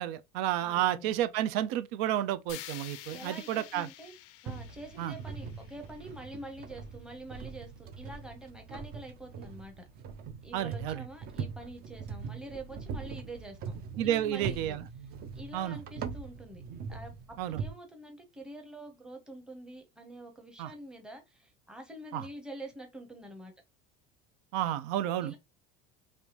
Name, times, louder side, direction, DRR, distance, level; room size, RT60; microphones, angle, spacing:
voice 1, 0.0-3.9 5.0-5.1 10.5-11.0 14.0-14.9 15.5-15.8 17.4-17.6 20.6-20.7 22.1-22.3 24.5-25.4, right 12 dB, 80° right, 0.6 m, -31 dB
voice 2, 0.6-1.1 3.1-4.1 4.4-9.8 10.4-14.8 15.3-16.6 16.9-23.5 25.2-25.4, right 1 dB, 5° right, 0.7 m, -46 dB
sound 1, 2.5-6.6, left 14 dB, 50° left, 0.4 m, -49 dB
sound 2, 4.5-17.7, right 5 dB, 30° right, 0.4 m, -42 dB
3.4 x 2.6 x 2.9 m
cardioid pair, 155°, 30 cm